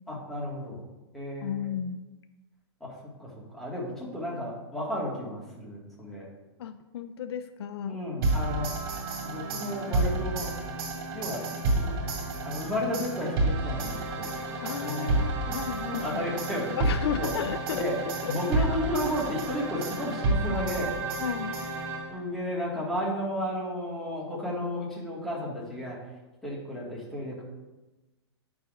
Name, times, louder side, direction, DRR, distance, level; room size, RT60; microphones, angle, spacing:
voice 1, 0.1-0.8 1.1-1.7 2.8-6.3 7.9-8.7 9.2-10.5 11.1-11.5 11.8-11.9 12.4-14.3 14.8-15.5 15.9-16.8 17.2-17.3 17.7-18.0 18.2-21.0 22.1-26.0 26.4-27.4, equal, ahead, -5 dB, 1.8 m, -33 dB
voice 2, 1.4-2.0 6.6-8.0 14.6-16.3 16.8-17.9 18.2-18.7 21.2-21.6, left 9 dB, 65° left, 10 dB, 0.4 m, -33 dB
sound 1, 8.2-22.3, right 2 dB, 55° right, 2.3 m, -30 dB
9.6 x 6.1 x 2.5 m, 1.1 s
hypercardioid pair, 145°, 14 cm